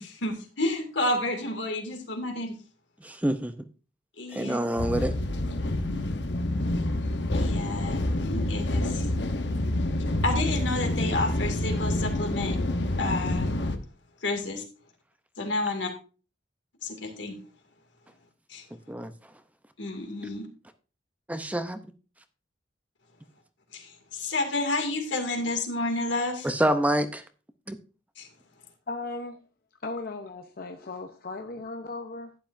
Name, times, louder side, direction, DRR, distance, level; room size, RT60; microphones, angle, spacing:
voice 1, 0.0-2.5 4.2-4.6 7.3-9.1 10.2-12.6 13.0-13.5 14.2-14.6 15.4-15.9 16.8-17.3 18.5-18.6 19.8-20.5 23.7-26.5 28.2-28.3, left 2 dB, 90° left, 3 dB, 2.4 m, -30 dB
voice 2, 3.0-3.5 4.3-5.1 18.9-19.1 21.3-21.8 26.4-27.2 27.7-27.8, right 1 dB, 10° right, 9 dB, 0.6 m, -26 dB
sound 1, 4.8-13.8, left 1 dB, 75° left, 1.0 m, -27 dB
voice 3, 28.9-29.4 29.8-32.4, left 3 dB, 55° left, 5 dB, 0.8 m, -37 dB
11.5 x 9.5 x 2.6 m, 0.34 s
head